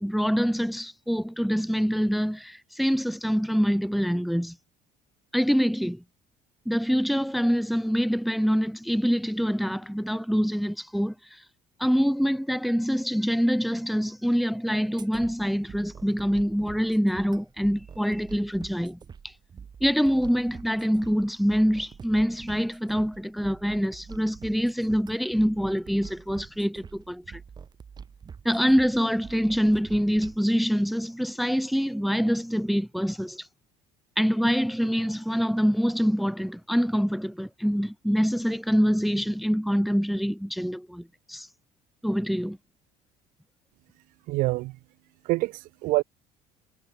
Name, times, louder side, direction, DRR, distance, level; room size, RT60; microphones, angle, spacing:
voice 1, 0.0-4.6 5.3-6.0 6.6-11.4 11.8-19.0 19.2-19.3 19.8-27.4 28.4-33.5 34.2-41.5 42.0-42.6, equal, ahead, 1.2 m, -25 dB
sound 1, 15.0-30.4, right 6 dB, 30° right, 7.3 m, -46 dB
voice 2, 44.3-44.8 45.2-46.0, right 21 dB, 75° right, 0.8 m, -26 dB
cardioid pair, 130°, 14 cm